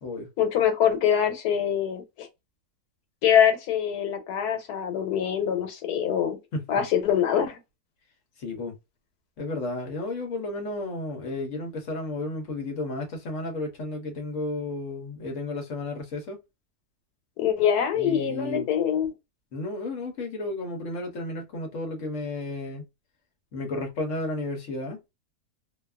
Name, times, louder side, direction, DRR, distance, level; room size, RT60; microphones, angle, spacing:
voice 1, 0.4-2.3 3.2-6.4 6.7-7.6 17.4-19.1, left 9 dB, 90° left, 1.2 m, -24 dB
voice 2, 8.4-8.8 9.4-16.4 17.9-18.7 19.5-22.9 23.5-25.0, left 2 dB, 60° left, 1.0 m, -32 dB
2.7 x 2.3 x 2.3 m
omnidirectional pair, 1.6 m